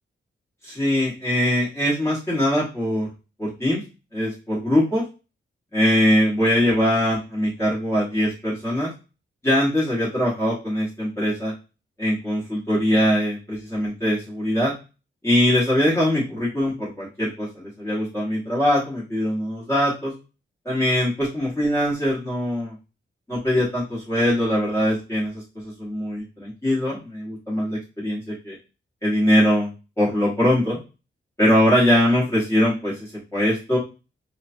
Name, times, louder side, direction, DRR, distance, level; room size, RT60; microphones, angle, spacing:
voice 1, 0.6-3.1 3.4-3.8 4.1-5.0 5.7-8.9 9.4-11.5 12.0-14.7 15.2-20.1 20.6-22.7 23.3-28.6 29.0-29.7 30.0-30.8 31.4-33.8, equal, 15° left, -8 dB, 1.1 m, -22 dB
3.1 x 2.2 x 2.5 m, 0.31 s
wide cardioid pair, 155°, 21 cm